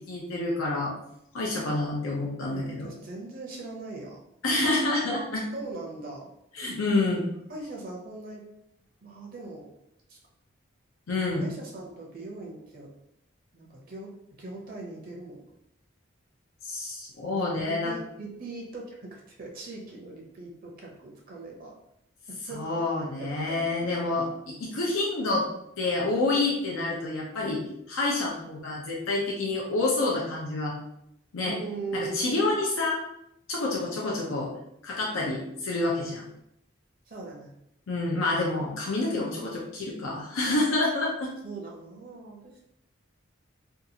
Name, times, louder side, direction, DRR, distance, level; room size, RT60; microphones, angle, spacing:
voice 1, 0.1-0.9 1.3-2.9 4.4-5.4 6.5-7.3 11.1-11.5 16.6-17.9 22.5-24.3 24.6-25.5 25.8-27.6 27.9-30.7 31.3-31.5 31.9-33.0 33.5-34.5 34.8-36.2 37.9-41.3, left 2 dB, 85° left, -3 dB, 0.6 m, -28 dB
voice 2, 2.5-4.3 5.5-6.3 7.5-8.4 9.0-9.7 10.1-10.2 11.4-12.9 13.5-14.1 14.4-15.5 17.3-21.7 22.5-22.6 23.2-23.6 24.1-24.2 31.4-32.6 37.1-37.5 41.4-42.6, right 3 dB, 45° right, -2 dB, 0.6 m, -40 dB
2.7 x 2.3 x 2.7 m, 0.79 s
head